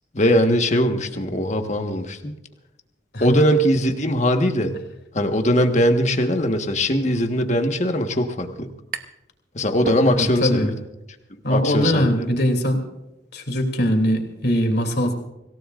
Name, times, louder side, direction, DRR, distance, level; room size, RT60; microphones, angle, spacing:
voice 1, 0.1-2.3 3.2-4.7 5.1-8.7 9.5-10.7 11.3-12.1, equal, 40° left, 5 dB, 1.5 m, -20 dB
sound 1, 8.1-9.3 9.6-10.6, right 3 dB, 55° right, 0.9 m, -34 dB
voice 2, 10.0-10.7 11.4-12.8 13.3-15.1, equal, 60° left, 4 dB, 3.0 m, -21 dB
26.0 x 17.0 x 2.5 m, 0.93 s
head